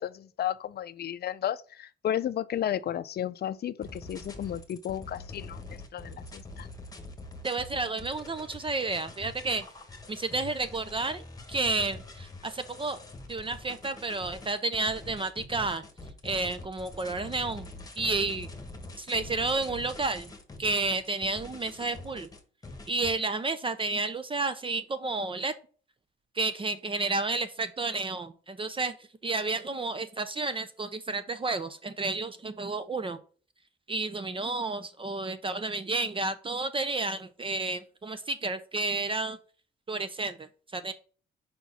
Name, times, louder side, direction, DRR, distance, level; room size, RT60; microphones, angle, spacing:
voice 1, 0.0-6.7, left 10 dB, 55° left, 0.5 m, -33 dB
sound 1, 3.8-23.1, left 2 dB, 20° left, 1.4 m, -45 dB
voice 2, 7.4-9.7 10.1-13.0 13.3-15.8 16.2-17.7 18.0-18.5 19.0-20.3 20.6-22.3 22.9-25.5 26.4-29.0 29.2-33.2 33.9-39.4 39.9-40.9, right 3 dB, 25° right, 0.6 m, -31 dB
5.2 x 4.5 x 5.5 m
cardioid pair, 90°, 20 cm